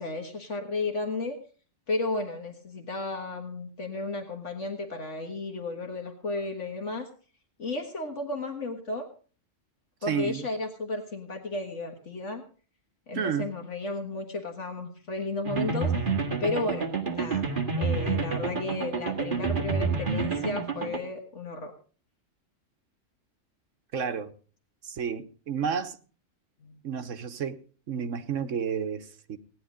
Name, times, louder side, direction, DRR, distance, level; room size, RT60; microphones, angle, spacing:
voice 1, 0.0-1.4 1.9-7.1 7.6-9.1 10.0-12.4 13.1-15.9 16.4-17.5 17.8-21.7 26.6-26.7, left 2 dB, 65° left, 1.9 m, -33 dB
voice 2, 10.1-10.5 13.1-13.5 23.9-24.3 24.8-26.0 26.8-27.6 27.9-29.4, right 7 dB, 75° right, 1.4 m, -31 dB
sound 1, 15.5-21.0, right 4 dB, 40° right, 2.0 m, -29 dB
17.5 x 10.5 x 5.1 m
omnidirectional pair, 1.3 m